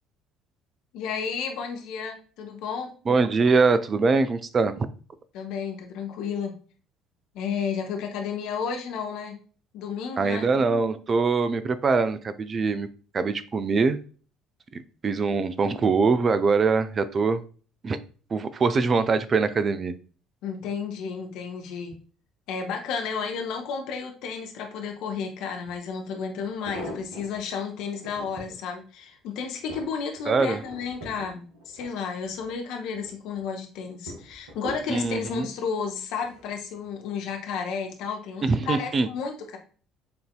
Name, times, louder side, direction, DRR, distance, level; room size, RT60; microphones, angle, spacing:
voice 1, 0.9-2.9 5.3-6.5 7.3-9.4 9.7-10.5 20.4-21.9 22.5-39.6, left 6 dB, 55° left, 3 dB, 0.7 m, -32 dB
voice 2, 3.1-4.9 10.2-12.9 13.1-14.0 14.7-17.4 17.8-18.0 18.3-19.9 30.3-30.6 34.9-35.5 38.4-39.1, right 4 dB, 35° right, 12 dB, 0.3 m, -23 dB
sound 1, 25.7-25.8 26.4-27.4 27.9-28.6 29.1-32.6 32.9-33.4 34.1-35.4 36.2-36.6 36.9-37.0, equal, 70° right, 0.9 m, -42 dB
6.6 x 2.6 x 2.2 m, 0.39 s
figure-of-eight pair, 55°, 0 cm